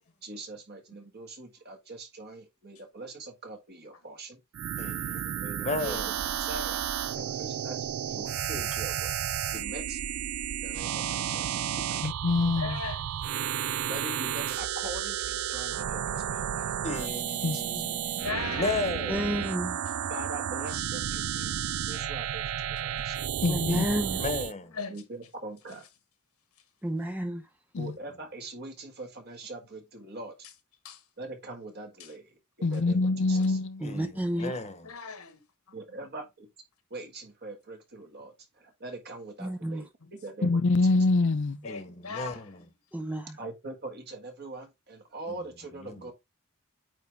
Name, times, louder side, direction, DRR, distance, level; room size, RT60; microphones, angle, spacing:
voice 1, 0.2-4.4 5.4-6.9 7.2-9.1 9.5-10.0 10.5-12.1 13.9-16.7 17.0-17.2 17.5-17.8 20.1-21.6 21.9-23.2 24.9-25.9 27.8-30.3 31.2-33.6 35.7-36.2 36.9-40.8 43.4-46.1, right 2 dB, 45° right, 1.7 m, -42 dB
sound 1, 4.5-24.5, right 10 dB, 70° right, 0.4 m, -32 dB
voice 2, 4.8-6.1 16.8-19.4 23.7-24.8 33.3-33.4 33.8-34.9 41.6-42.6 45.8-46.1, left 3 dB, 30° left, 1.1 m, -35 dB
voice 3, 12.0-12.8 17.4-17.8 23.4-23.8 27.7-27.9 32.6-33.9 40.4-41.6, left 3 dB, 55° left, 0.5 m, -25 dB
voice 4, 12.6-13.3 17.7-17.9 18.2-18.8 22.8-22.9 24.7-25.0 30.8-31.0 32.0-32.1 34.4-34.5 34.8-35.4 40.0-40.1 41.6-42.6, left 5 dB, 80° left, 1.5 m, -38 dB
voice 5, 19.1-19.8 23.5-24.2 26.8-27.4 33.8-34.6 39.4-39.8 42.9-43.4, equal, 5° right, 0.5 m, -31 dB
8.8 x 3.4 x 3.6 m
head